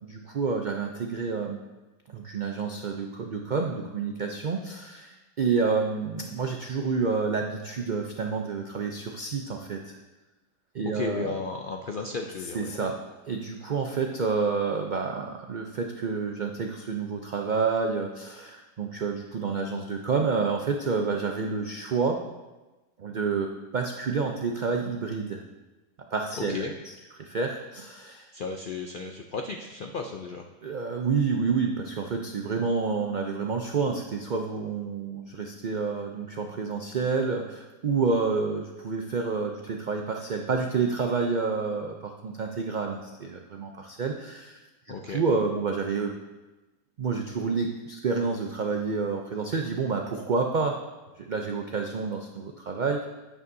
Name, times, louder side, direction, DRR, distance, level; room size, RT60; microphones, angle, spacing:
voice 1, 0.0-1.6 2.1-10.0 10.7-11.3 12.5-13.0 13.3-22.2 23.0-25.4 26.1-28.3 30.6-44.6 44.9-46.2 47.0-50.8 51.2-53.1, right 4 dB, 85° right, 3 dB, 0.4 m, -29 dB
voice 2, 10.9-12.7 26.4-26.7 28.3-30.4 44.9-45.2, left 4 dB, 70° left, 3 dB, 0.4 m, -34 dB
9.4 x 8.5 x 2.6 m, 1.1 s
omnidirectional pair, 1.6 m